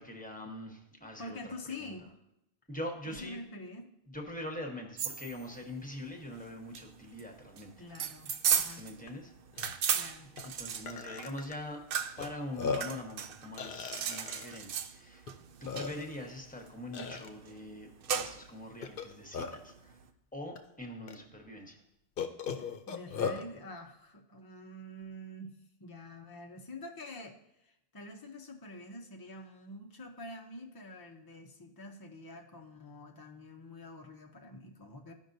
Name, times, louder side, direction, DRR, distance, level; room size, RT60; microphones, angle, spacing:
voice 1, 0.0-1.5 1.8-1.9 2.7-3.4 4.1-7.7 8.8-9.3 10.6-11.8 12.2-15.3 15.6-20.0 20.3-21.8, left 1 dB, 10° left, 2 dB, 1.1 m, -43 dB
voice 2, 1.2-2.1 3.1-3.9 7.8-8.8 9.9-10.3 22.6-35.1, left 1 dB, 25° left, 2 dB, 0.5 m, -47 dB
sound 1, 5.0-20.1, right 8 dB, 65° right, 0.7 m, -37 dB
Burping eructation, 9.1-9.2 9.5-9.7 10.4-10.5 10.9-11.5 12.2-12.3 12.6-13.0 13.6-14.6 15.3-15.4 15.7-16.2 16.9-17.3 18.8-19.7 20.6-20.7 21.1-21.2 22.2-23.4, left 5 dB, 60° left, 0.8 m, -37 dB
14.0 x 5.3 x 2.6 m, 0.82 s
omnidirectional pair, 1.0 m